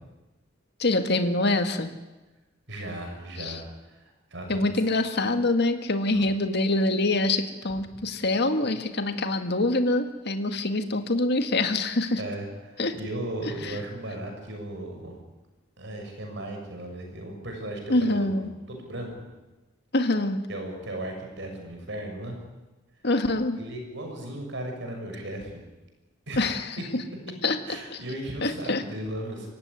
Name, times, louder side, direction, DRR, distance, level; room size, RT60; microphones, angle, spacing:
voice 1, 0.8-1.9 3.4-3.6 4.5-12.2 12.8-13.0 13.6-13.8 17.9-18.5 19.9-20.4 23.0-23.6 26.4-26.8 27.4-27.6 27.9-28.0 28.4-28.8, left 2 dB, 60° left, 7 dB, 1.9 m, -25 dB
voice 2, 2.7-4.7 6.1-6.2 12.2-15.2 15.8-19.1 20.5-22.3 23.6-25.6 26.3-26.5 26.8-26.9 27.6-29.5, right 1 dB, 65° right, 3 dB, 6.4 m, -36 dB
24.0 x 16.0 x 9.8 m, 1.1 s
head